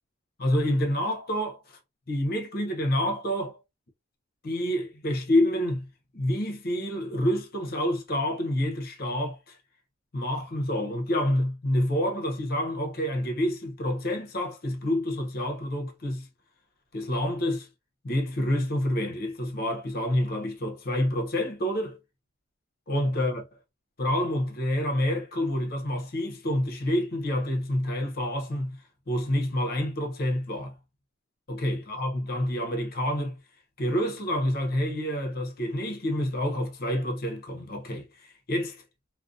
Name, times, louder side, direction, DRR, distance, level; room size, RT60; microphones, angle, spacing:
voice 1, 0.4-1.8 2.1-3.6 4.4-9.6 10.1-16.3 16.9-17.7 18.0-22.0 22.9-23.4 24.0-28.8 29.1-30.7 31.5-33.4 33.8-38.8, left 1 dB, 45° left, 0.6 m, -28 dB
2.5 x 2.1 x 2.4 m
head